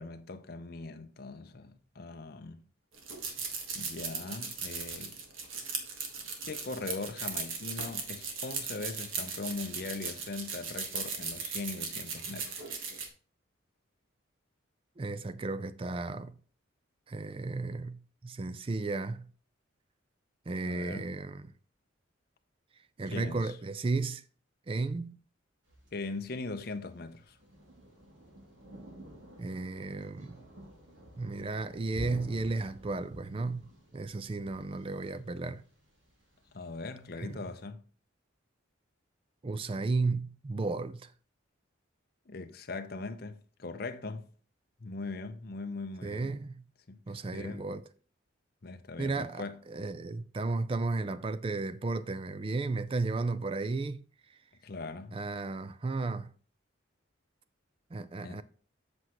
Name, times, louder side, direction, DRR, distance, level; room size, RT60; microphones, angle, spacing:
voice 1, 0.0-2.6 3.7-5.2 6.4-12.7 20.7-21.1 23.1-23.5 25.9-27.4 36.5-37.8 42.3-44.3 44.8-46.3 46.9-47.0 47.3-47.6 48.6-49.6 54.6-55.1 58.2-58.4, left 3 dB, 50° left, 0.6 m, -40 dB
sound 1, 2.9-13.1, right 5 dB, 80° right, 1.5 m, -38 dB
voice 2, 15.0-16.4 17.1-19.3 20.5-21.5 23.0-24.2 24.7-25.2 29.4-30.4 31.2-35.6 37.2-37.4 39.4-41.1 46.0-46.6 47.1-47.8 49.0-54.0 55.1-56.3 57.9-58.4, right 3 dB, 25° right, 0.3 m, -34 dB
Thunder, 25.7-37.6, equal, 65° right, 2.5 m, -51 dB
7.8 x 6.2 x 3.0 m
head